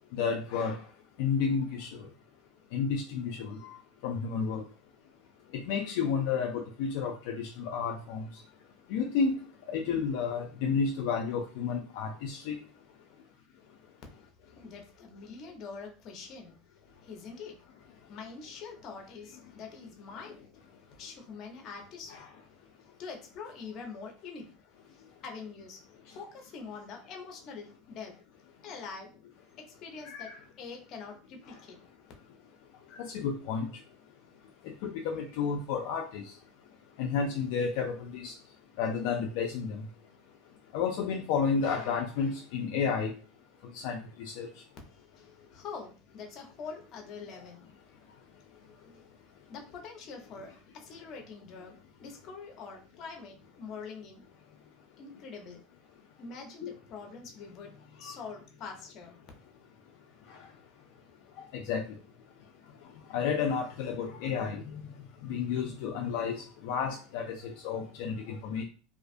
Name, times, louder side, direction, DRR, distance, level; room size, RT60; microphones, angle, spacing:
voice 1, 0.1-0.8 1.2-1.9 2.7-3.8 4.0-4.6 5.5-8.2 8.9-9.4 9.7-12.6 22.1-22.2 30.0-30.4 32.9-33.7 34.8-36.2 37.0-38.3 38.8-39.8 40.7-43.1 43.7-44.5 56.6-56.7 61.5-61.8 63.1-64.6 65.3-68.7, left 6 dB, 70° left, 0.3 m, -31 dB
voice 2, 14.2-16.6 17.0-17.6 17.9-20.4 20.9-22.2 23.0-24.5 24.9-25.8 26.1-28.2 28.6-29.1 29.7-30.3 30.6-31.8 44.9-47.6 48.3-49.1 49.5-54.2 55.0-55.6 56.2-57.7 58.0-59.2, left 5 dB, 45° left, 0.7 m, -45 dB
2.4 x 2.4 x 2.4 m
supercardioid pair, 130°, 0 cm